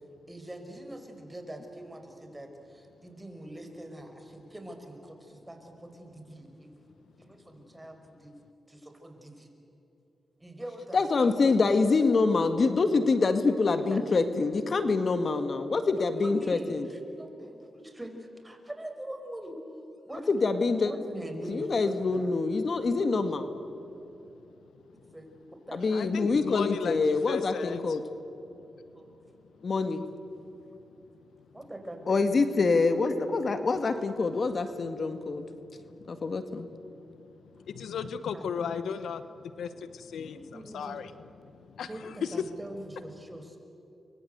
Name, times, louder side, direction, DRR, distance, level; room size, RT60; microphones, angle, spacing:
voice 1, 0.3-6.7 7.2-8.3 8.7-9.5 10.4-11.7 13.8-14.1 15.5-19.6 20.0-20.3 20.8-22.3 25.1-26.7 29.0-29.1 31.5-32.6 38.3-38.5 40.0-41.0 41.9-43.6, right 1 dB, 15° right, 5 dB, 5.6 m, -43 dB
voice 2, 10.9-16.9 20.3-20.9 21.5-23.5 25.7-28.0 29.6-30.0 32.1-35.4 36.1-36.7, left 4 dB, 55° left, 8 dB, 1.8 m, -26 dB
voice 3, 25.9-27.0 27.3-27.8 37.7-39.2 39.6-41.1 41.8-41.9, left 7 dB, 85° left, 12 dB, 1.0 m, -35 dB
30.0 x 23.5 x 8.1 m, 3.0 s
cardioid pair, 55°, 0 cm